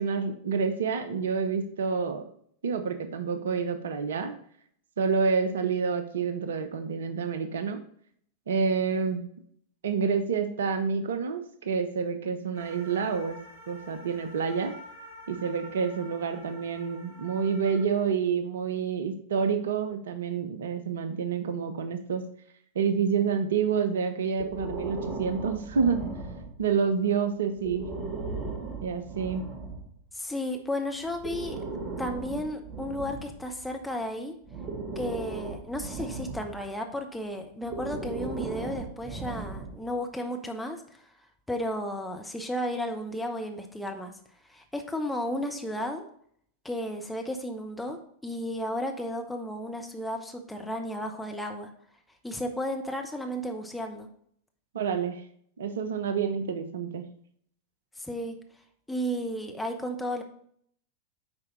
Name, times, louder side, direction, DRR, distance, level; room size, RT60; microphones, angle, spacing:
voice 1, 0.0-2.2 2.6-4.3 5.0-7.8 8.5-9.2 9.8-13.4 13.7-14.7 15.3-22.2 22.8-26.0 26.6-27.9 28.8-29.5 54.7-55.2 55.6-57.0, right 6 dB, 65° right, 9 dB, 0.7 m, -28 dB
sound 1, 12.5-17.8, equal, 70° left, 2.2 m, -48 dB
Breathing, 24.4-26.8 27.6-29.9 31.0-33.9 34.5-36.7 37.6-39.9, right 3 dB, 25° right, 1.6 m, -37 dB
voice 2, 30.1-31.6 32.0-34.3 35.0-41.1 41.5-44.1 44.5-46.0 46.6-48.0 48.2-51.7 52.2-54.1 58.0-58.4 58.9-60.2, equal, 5° left, 3 dB, 0.9 m, -33 dB
8.5 x 4.6 x 3.1 m, 0.64 s
figure-of-eight pair, 90°, 0 cm